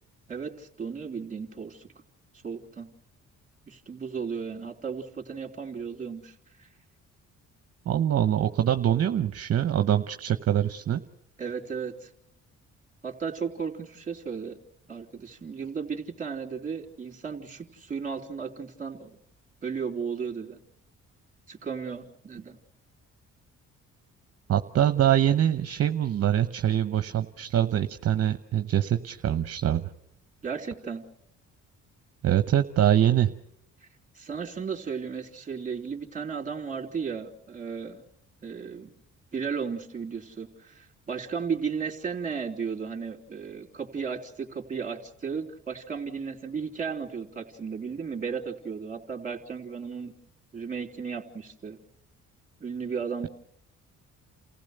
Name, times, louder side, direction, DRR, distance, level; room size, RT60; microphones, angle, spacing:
voice 1, 0.3-1.9 2.3-2.9 3.7-6.7 11.4-12.1 13.0-14.6 14.9-19.2 19.6-20.6 21.5-22.6 30.4-31.0 34.1-38.0 38.4-38.9 39.3-50.1 50.5-51.8 52.6-53.3, right 6 dB, 25° right, 2 dB, 3.3 m, -35 dB
voice 2, 7.9-11.0 24.5-29.9 32.2-33.3, right 10 dB, 55° right, 8 dB, 0.9 m, -24 dB
29.5 x 16.0 x 6.7 m, 0.73 s
cardioid pair, 90°, 30 cm